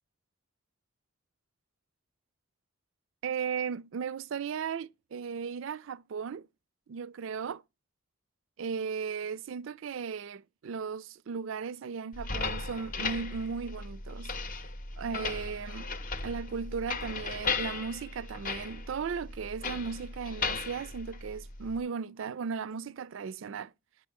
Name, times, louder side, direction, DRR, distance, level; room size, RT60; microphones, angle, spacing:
voice 1, 3.2-6.5 6.9-7.6 8.6-14.5 15.0-15.9 16.2-23.7, right 6 dB, 65° right, 0.4 m, -36 dB
sound 1, 12.1-21.8, left 4 dB, 40° left, 0.7 m, -36 dB
10.0 x 6.3 x 3.5 m
head